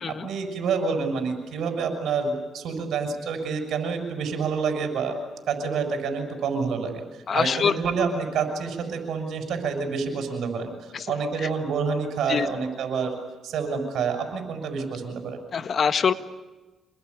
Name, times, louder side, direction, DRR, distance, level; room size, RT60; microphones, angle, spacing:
voice 1, 0.1-5.2 5.5-7.0 7.3-13.1 13.4-15.4, right 5 dB, 75° right, 6 dB, 6.7 m, -28 dB
voice 2, 7.3-7.7 10.9-11.1 12.3-12.5 15.5-16.1, left 6 dB, 50° left, 11 dB, 1.5 m, -23 dB
27.5 x 20.5 x 9.7 m, 1.1 s
cardioid pair, 90°, 0 cm